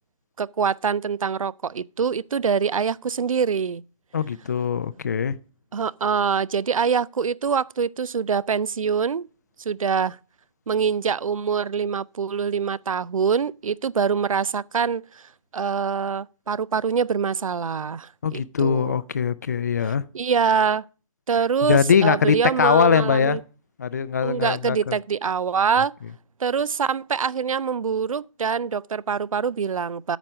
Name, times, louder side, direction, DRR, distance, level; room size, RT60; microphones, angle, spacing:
voice 1, 0.4-3.8 5.7-9.2 9.7-10.2 10.7-15.2 15.5-19.0 20.1-20.8 21.3-23.4 24.2-25.9 26.4-30.2, right 6 dB, 85° right, 0.4 m, -24 dB
voice 2, 4.1-5.4 18.2-20.0 21.6-23.4 23.8-25.0, left 6 dB, 30° left, 0.4 m, -21 dB
9.0 x 4.9 x 7.1 m
hypercardioid pair, 160°, 17 cm